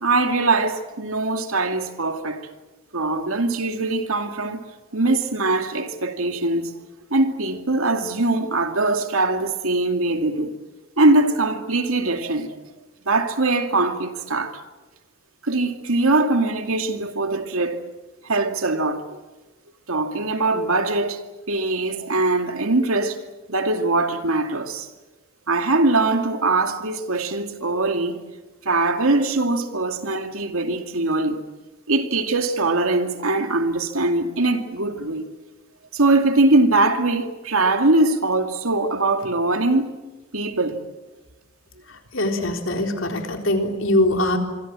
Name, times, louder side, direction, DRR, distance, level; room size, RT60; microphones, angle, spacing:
voice 1, 0.0-2.5 2.9-4.6 4.9-6.7 7.1-10.6 11.0-12.6 13.1-14.6 15.4-17.8 18.2-19.2 19.9-21.2 21.5-23.2 23.5-24.9 25.5-28.2 28.6-31.4 31.9-35.3 35.9-39.9 40.3-40.8, right 2 dB, 90° right, 2.5 m, -22 dB
voice 2, 41.9-44.4, left 1 dB, 65° left, 3.9 m, -22 dB
25.5 x 25.0 x 7.6 m
head